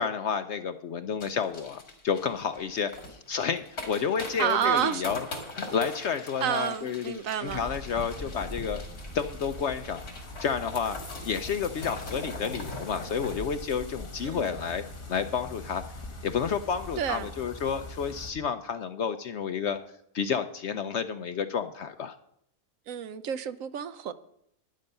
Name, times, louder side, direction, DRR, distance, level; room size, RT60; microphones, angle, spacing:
voice 1, 0.0-5.2 5.5-8.8 9.1-10.0 10.4-11.0 11.2-14.8 15.1-15.8 16.2-19.8 20.1-22.2, left 6 dB, 60° left, 0.8 m, -30 dB
sound 1, 1.2-15.0 15.3-15.4 15.6-16.0 16.3-16.5, left 2 dB, 80° left, 2.9 m, -43 dB
voice 2, 4.4-5.1 6.4-7.7 14.2-14.6 17.0-17.3 22.9-24.1, right 9 dB, 70° right, 1.0 m, -29 dB
sound 2, 7.5-18.3, left 1 dB, 20° left, 1.1 m, -42 dB
11.5 x 10.0 x 5.4 m
omnidirectional pair, 1.6 m